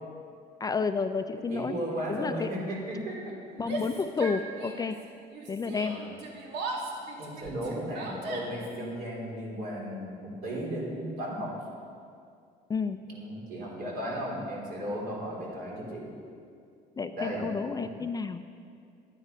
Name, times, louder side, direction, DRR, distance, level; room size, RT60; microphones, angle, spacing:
voice 1, 0.6-1.8 2.1-2.5 3.6-5.0 5.5-6.0 12.7-13.0 17.0-18.4, left 5 dB, 20° left, 9 dB, 0.4 m, -31 dB
voice 2, 1.5-3.2 3.8-4.0 5.8-6.0 7.2-11.6 13.1-16.1 17.1-17.5, equal, 60° right, -3 dB, 3.5 m, -35 dB
Yell, 3.6-5.0 5.3-8.8, right 2 dB, 75° right, 1.9 m, -38 dB
11.5 x 9.6 x 5.4 m, 2.3 s
cardioid pair, 110°, 17 cm